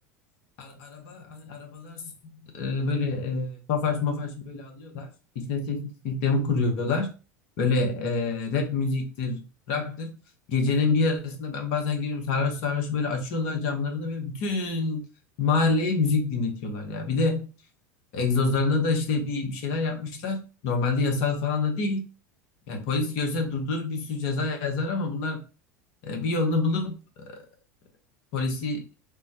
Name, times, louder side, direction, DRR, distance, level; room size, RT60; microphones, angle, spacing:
voice 1, 0.6-2.1 2.5-5.1 5.3-7.1 7.6-9.4 9.7-10.1 10.5-15.1 15.4-17.5 18.1-22.0 22.7-25.4 26.0-26.9 27.3-27.4 28.3-28.9, left 3 dB, 55° left, 3 dB, 0.9 m, -27 dB
3.5 x 2.1 x 2.9 m, 0.34 s
hypercardioid pair, 85°, 8 cm